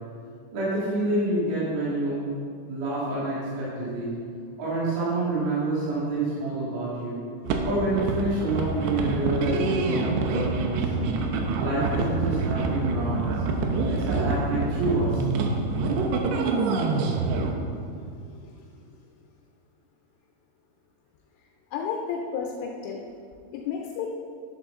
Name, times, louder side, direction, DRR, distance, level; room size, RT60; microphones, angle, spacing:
voice 1, 0.5-2.2 2.7-4.1 4.6-7.2 7.6-11.1 11.6-13.4 13.9-15.2, right 2 dB, 60° right, -9 dB, 4.4 m, -28 dB
sound 1, 7.5-17.5, right 3 dB, 80° right, 2.5 m, -26 dB
voice 2, 18.2-18.6 21.7-23.0 23.5-24.1, left 6 dB, 80° left, 1 dB, 3.2 m, -32 dB
11.5 x 10.5 x 3.8 m, 2.3 s
omnidirectional pair, 5.8 m